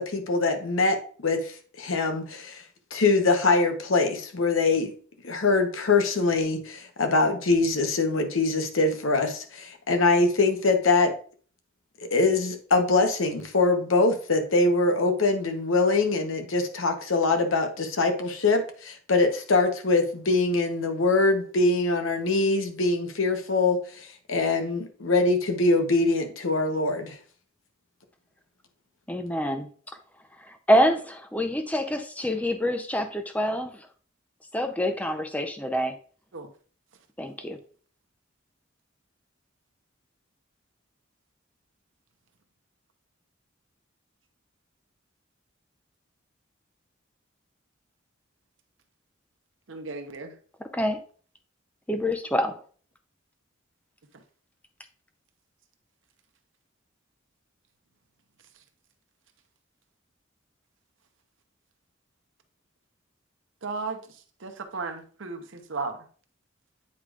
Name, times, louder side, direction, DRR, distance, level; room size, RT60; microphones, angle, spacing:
voice 1, 0.0-2.6 2.9-4.9 5.2-11.1 12.1-27.2, left 3 dB, 90° left, 5 dB, 0.9 m, -23 dB
voice 2, 29.1-29.7 30.7-33.7 34.5-35.9 37.2-37.6 50.7-51.0 51.9-52.5, equal, 5° left, 6 dB, 0.5 m, -26 dB
voice 3, 49.7-50.3 63.6-64.0 64.4-66.1, right 4 dB, 75° right, 6 dB, 0.8 m, -35 dB
8.3 x 4.8 x 2.4 m, 0.44 s
head